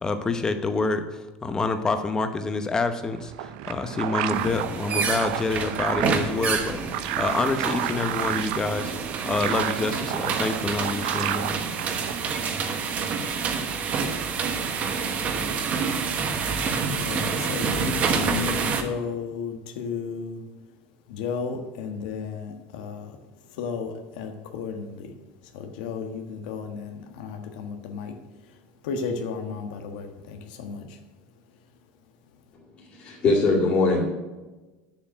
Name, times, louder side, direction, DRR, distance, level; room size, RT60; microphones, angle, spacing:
voice 1, 0.0-11.6, left 3 dB, 15° left, 8 dB, 0.9 m, -27 dB
sound 1, 3.1-12.4, right 13 dB, 75° right, 0.7 m, -32 dB
sound 2, 4.3-18.8, right 5 dB, 35° right, 1.2 m, -28 dB
voice 2, 17.0-20.4 21.1-23.1 23.6-25.1 25.5-28.1 28.8-30.8, left 5 dB, 90° left, 5 dB, 1.4 m, -33 dB
voice 3, 32.8-34.0, left 3 dB, 30° left, -6 dB, 2.4 m, -22 dB
9.5 x 7.4 x 7.6 m, 1.2 s
cardioid pair, 160°, 4 cm